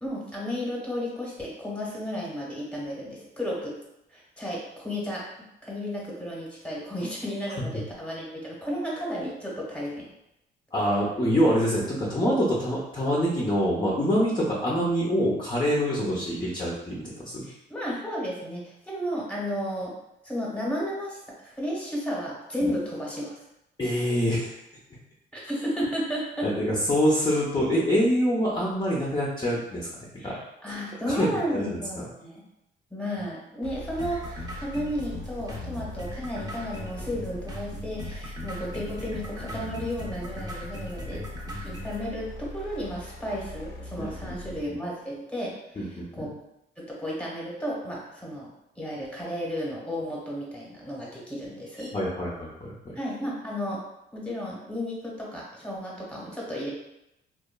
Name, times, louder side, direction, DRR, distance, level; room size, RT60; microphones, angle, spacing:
voice 1, 0.0-3.8 4.1-5.3 5.6-10.1 16.1-16.2 17.4-19.9 20.2-23.3 25.3-26.5 30.2-32.4 32.9-41.2 41.6-46.4 46.8-48.5 48.7-51.9 52.9-53.8 54.1-56.7, equal, 5° left, -4 dB, 1.0 m, -33 dB
voice 2, 10.7-17.5 23.8-24.6 26.4-30.4 30.7-30.8 31.1-32.1 44.0-44.8 45.8-46.3 51.8-53.0, equal, 20° left, -6 dB, 0.6 m, -26 dB
sound 1, 33.6-44.7, left 1 dB, 80° left, 0.6 m, -41 dB
sound 2, 34.0-42.0, equal, 20° right, 0.7 m, -39 dB
2.9 x 2.3 x 2.2 m, 0.85 s
cardioid pair, 90°, 20 cm